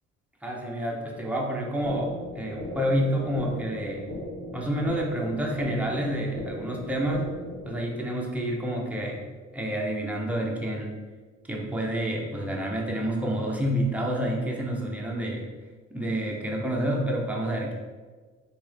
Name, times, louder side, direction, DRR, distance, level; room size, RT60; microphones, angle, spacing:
voice 1, 0.4-4.1 4.5-7.3 7.6-9.2 9.5-11.0 11.5-15.4 15.9-17.7, right 1 dB, 5° right, -2 dB, 0.8 m, -28 dB
sound 1, 1.8-7.8, left 1 dB, 25° left, 1.1 m, -38 dB
3.5 x 3.0 x 3.3 m, 1.4 s
cardioid pair, 90°, 30 cm